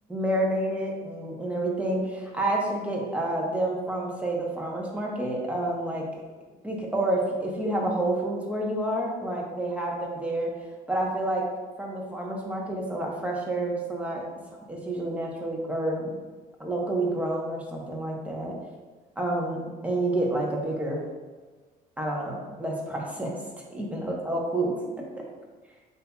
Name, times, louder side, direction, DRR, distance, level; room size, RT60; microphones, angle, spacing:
voice 1, 0.1-6.1 6.6-10.5 10.9-11.5 11.8-14.2 14.7-16.1 16.6-18.5 19.2-21.0 22.0-23.3 23.7-25.2, right 1 dB, 10° right, -2 dB, 1.0 m, -29 dB
7.6 x 2.7 x 2.3 m, 1.4 s
cardioid pair, 110°, 17 cm